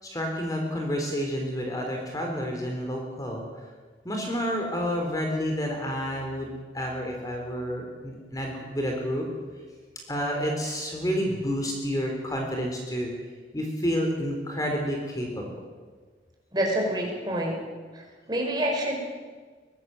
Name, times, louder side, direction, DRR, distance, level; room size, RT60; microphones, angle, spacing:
voice 1, 0.0-3.4 4.1-9.3 10.1-13.1 13.5-15.6, equal, 20° left, 1 dB, 3.6 m, -29 dB
voice 2, 16.5-17.6 17.9-19.1, right 1 dB, 25° right, 0 dB, 5.4 m, -27 dB
22.5 x 18.5 x 7.8 m, 1.5 s
head